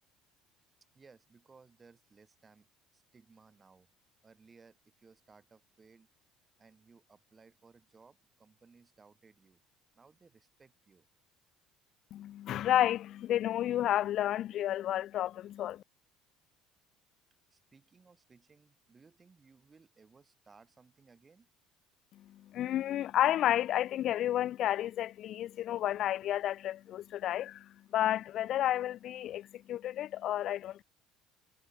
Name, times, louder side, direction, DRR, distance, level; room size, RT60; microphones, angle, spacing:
voice 1, 0.9-2.7 2.9-3.9 4.2-6.1 6.6-9.6 9.9-11.1 17.5-21.5, right 4 dB, 25° right, 3.4 m, -61 dB
voice 2, 12.1-15.8 22.3-30.8, left 12 dB, 60° left, 0.4 m, -31 dB
supercardioid pair, 90°, 0 cm